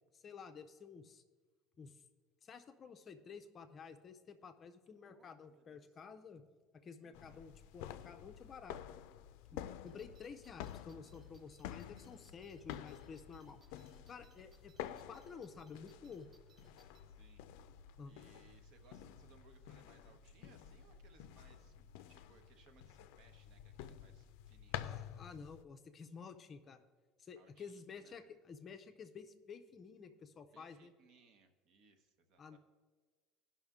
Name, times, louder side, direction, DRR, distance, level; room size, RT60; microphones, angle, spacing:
voice 1, 0.1-1.2 1.8-2.0 2.4-6.4 6.7-8.8 9.5-13.6 14.1-14.7 15.1-16.3 18.0-18.1 24.8-26.8 27.2-30.9 32.4-32.6, left 5 dB, 30° left, 8 dB, 0.5 m, -52 dB
voice 2, 5.0-5.9 7.0-7.5 13.3-13.7 14.9-15.1 17.1-17.4 18.0-24.9 27.4-28.3 30.5-32.6, right 4 dB, 55° right, 7 dB, 0.9 m, -68 dB
sound 1, 7.1-25.6, left 11 dB, 85° left, 0.4 m, -50 dB
sound 2, 9.9-17.0, right 3 dB, 20° right, 0.7 m, -71 dB
16.5 x 5.7 x 3.6 m, 1.4 s
cardioid pair, 155°, 0 cm